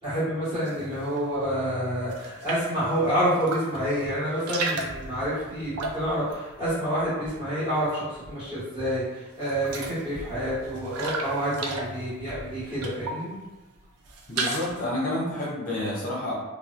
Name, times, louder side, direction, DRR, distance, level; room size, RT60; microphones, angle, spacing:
voice 1, 0.0-13.3, equal, 20° right, -12 dB, 1.4 m, -28 dB
sound 1, 0.6-1.3 1.6-2.8 3.3-3.9 4.2-7.6 7.9-8.6 8.9-9.0 9.3-13.3 13.8-14.9, right 3 dB, 80° right, 0.4 m, -35 dB
voice 2, 14.3-16.3, left 1 dB, 35° left, -6 dB, 0.6 m, -29 dB
2.9 x 2.1 x 2.4 m, 1.1 s
head